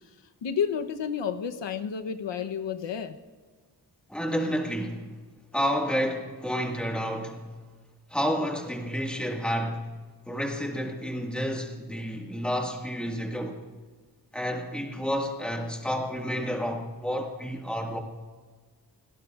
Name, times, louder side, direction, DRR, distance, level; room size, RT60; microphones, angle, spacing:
voice 1, 0.4-3.2, left 7 dB, 85° left, 0.9 m, -30 dB
voice 2, 4.1-5.1 5.5-7.5 8.1-9.9 10.3-13.6 14.3-18.0, equal, ahead, 1.7 m, -30 dB
30.0 x 17.5 x 2.4 m
wide cardioid pair, 165°, 43 cm